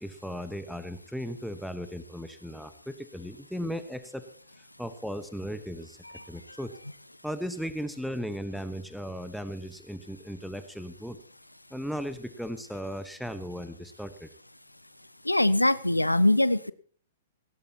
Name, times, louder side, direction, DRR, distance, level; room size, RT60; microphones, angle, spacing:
voice 1, 0.0-4.3 4.6-6.0 6.3-6.7 7.2-11.2 11.7-14.3, equal, ahead, 11 dB, 1.1 m, -36 dB
voice 2, 15.3-16.7, left 1 dB, 85° left, 18 dB, 0.7 m, -22 dB
19.0 x 17.5 x 2.9 m, 0.43 s
figure-of-eight pair, 110°, 0 cm